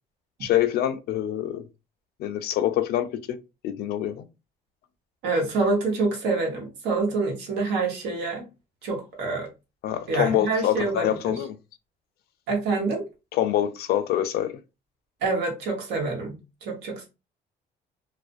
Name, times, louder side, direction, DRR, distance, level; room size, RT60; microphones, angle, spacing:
voice 1, 0.4-1.6 2.2-3.1 3.6-4.3 9.8-11.6 13.3-14.6, left 11 dB, 70° left, 0.4 m, -25 dB
voice 2, 5.2-8.4 8.8-9.5 10.1-11.3 12.5-13.0 15.2-16.4 16.6-17.1, right 3 dB, 80° right, 1.0 m, -26 dB
2.4 x 2.0 x 2.4 m
cardioid pair, 110°, 17 cm